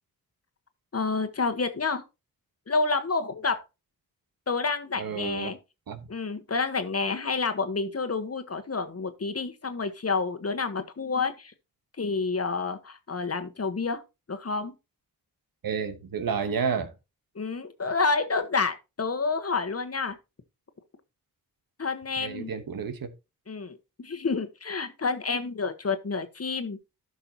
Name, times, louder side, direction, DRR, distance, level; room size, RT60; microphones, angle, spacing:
voice 1, 0.9-2.0 2.7-3.6 4.5-5.6 6.1-11.5 12.0-14.0 14.3-14.7 17.3-20.2 21.8-22.5 23.5-26.8, left 4 dB, 45° left, 1.3 m, -29 dB
voice 2, 5.0-5.5 5.9-6.1 15.6-16.9 22.2-23.1, right 6 dB, 75° right, 1.2 m, -31 dB
12.5 x 5.5 x 2.9 m
cardioid pair, 45°, 35 cm